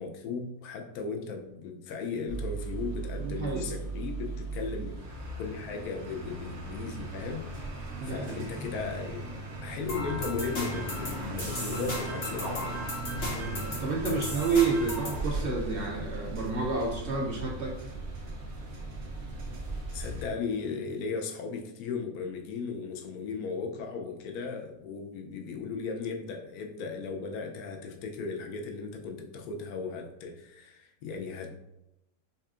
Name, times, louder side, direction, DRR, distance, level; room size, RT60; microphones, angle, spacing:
voice 1, 0.0-5.1 5.4-7.7 8.0-12.8 19.9-31.6, left 5 dB, 75° left, 2 dB, 1.1 m, -36 dB
sound 1, 2.3-20.3, right 2 dB, 50° right, 1.0 m, -38 dB
voice 2, 3.2-3.7 8.0-8.4 13.3-17.8, right 4 dB, 75° right, -2 dB, 0.5 m, -30 dB
sound 2, 9.9-15.2, left 1 dB, 45° left, 1.1 m, -37 dB
5.3 x 2.4 x 2.4 m, 0.90 s
omnidirectional pair, 1.6 m